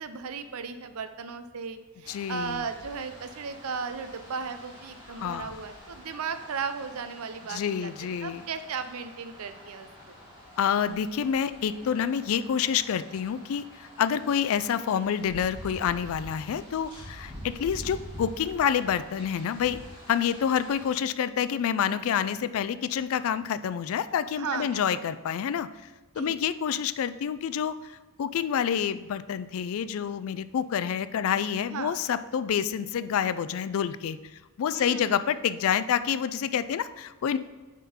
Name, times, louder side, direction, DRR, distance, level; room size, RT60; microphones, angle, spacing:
voice 1, 0.0-7.9 8.2-10.2 24.4-25.0 26.2-26.4 31.7-31.9 34.7-35.2, right 5 dB, 75° right, 10 dB, 0.5 m, -36 dB
sound 1, 2.0-20.9, equal, 25° right, 2.2 m, -47 dB
voice 2, 2.1-2.6 5.2-5.5 7.5-8.4 10.6-19.8 20.1-25.7 26.2-34.2 34.6-37.4, left 8 dB, 65° left, 13 dB, 0.3 m, -28 dB
9.2 x 3.7 x 4.3 m, 1.2 s
head